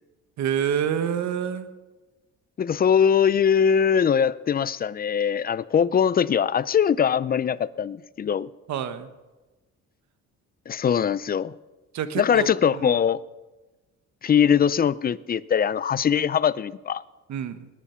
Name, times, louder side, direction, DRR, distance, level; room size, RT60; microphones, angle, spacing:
voice 1, 0.4-1.7 8.7-9.1 11.9-12.5 12.8-13.0 17.3-17.7, right 8 dB, 65° right, 1.2 m, -27 dB
voice 2, 2.6-8.5 10.7-11.5 12.2-13.2 14.2-17.0, left 8 dB, 30° left, 0.5 m, -21 dB
19.5 x 10.0 x 5.8 m
cardioid pair, 110°, 30 cm